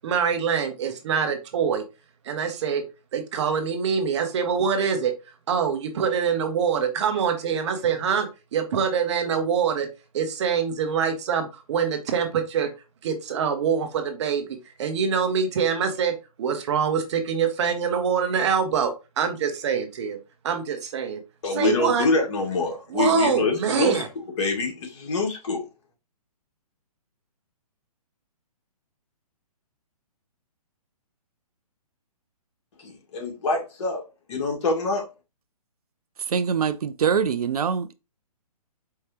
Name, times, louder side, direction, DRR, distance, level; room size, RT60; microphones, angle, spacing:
voice 1, 0.0-1.8 2.3-2.8 3.1-5.1 5.5-9.9 10.1-12.7 13.0-20.2 20.4-21.2 21.5-22.1 22.9-24.1, right 7 dB, 45° right, 1.0 m, -25 dB
voice 2, 21.4-24.0 24.4-25.6 32.8-34.0 34.3-35.0, left 3 dB, 50° left, 1.8 m, -25 dB
voice 3, 36.3-37.9, right 7 dB, 75° right, 0.5 m, -24 dB
4.6 x 3.2 x 2.9 m
hypercardioid pair, 140°, 19 cm